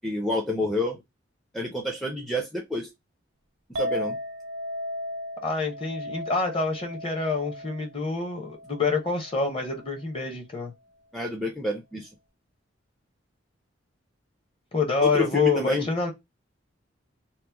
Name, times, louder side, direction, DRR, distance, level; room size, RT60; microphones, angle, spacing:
voice 1, 0.0-1.0 1.5-2.9 3.7-4.2 11.1-12.1 15.0-15.9, left 1 dB, ahead, 0.4 m, -28 dB
Chink clink, 3.8-10.0, left 1 dB, 90° right, 0.6 m, -36 dB
voice 2, 5.4-10.7 14.7-16.1, left 4 dB, 30° left, 0.8 m, -27 dB
3.0 x 2.0 x 3.3 m
head